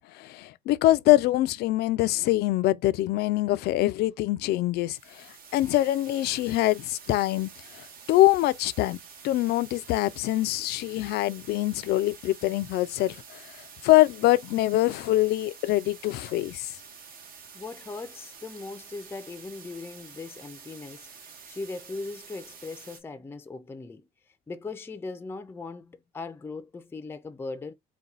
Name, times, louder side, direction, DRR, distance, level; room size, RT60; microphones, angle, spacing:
voice 1, 0.0-9.0 9.2-13.5 13.8-16.7, left 16 dB, 75° left, 0.4 m, -24 dB
sound 1, 4.9-23.0, right 6 dB, 60° right, 1.1 m, -48 dB
voice 2, 17.5-21.1 21.5-27.7, left 3 dB, 15° left, 0.5 m, -39 dB
4.1 x 2.2 x 3.9 m
cardioid pair, 110°, 17 cm